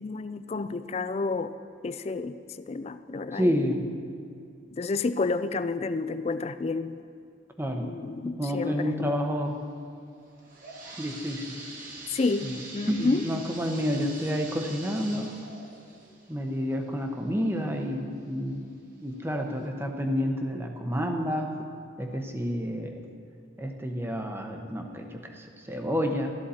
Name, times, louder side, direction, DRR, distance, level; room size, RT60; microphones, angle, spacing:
voice 1, 0.0-1.5 1.8-2.4 2.7-3.5 4.7-7.0 7.8-9.1 12.1-13.2, left 3 dB, 35° left, 12 dB, 0.3 m, -30 dB
voice 2, 3.3-3.8 7.6-7.9 8.2-9.6 11.0-11.6 12.4-12.6 12.9-15.3 16.3-18.6 19.0-21.5 22.0-23.0 23.6-26.3, equal, 10° right, 3 dB, 0.9 m, -29 dB
sound 1, 10.2-17.8 18.3-18.4 19.1-19.2 19.6-19.7, right 2 dB, 45° right, 1.7 m, -44 dB
14.0 x 12.0 x 4.2 m, 2.3 s
head